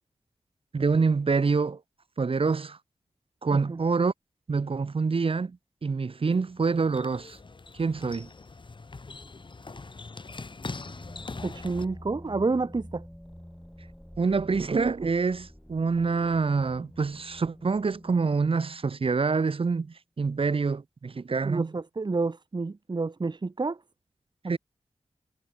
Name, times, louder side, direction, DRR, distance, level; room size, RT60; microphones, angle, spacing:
voice 1, 0.7-1.8 2.2-2.8 3.4-4.1 4.5-5.6 5.8-7.4 7.7-8.3 14.2-21.7 24.4-24.6, right 4 dB, 60° right, 3.1 m, -26 dB
sound 1, 6.2-11.9, left 3 dB, 50° left, 3.7 m, -42 dB
sound 2, 10.7-19.2, equal, 5° left, 5.9 m, -48 dB
voice 2, 11.4-13.1 21.4-23.8 24.4-24.5, right 3 dB, 45° right, 1.6 m, -29 dB
cardioid pair, 45°, 10 cm